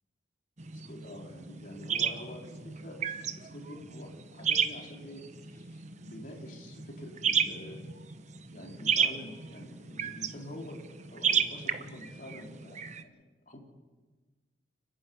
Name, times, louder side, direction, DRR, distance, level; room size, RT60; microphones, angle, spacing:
sound 1, 0.6-13.0, right 7 dB, 40° right, 1.0 m, -33 dB
voice 1, 0.7-7.8 8.5-13.6, left 1 dB, 45° left, 0 dB, 3.9 m, -47 dB
30.0 x 10.5 x 9.6 m, 1.3 s
head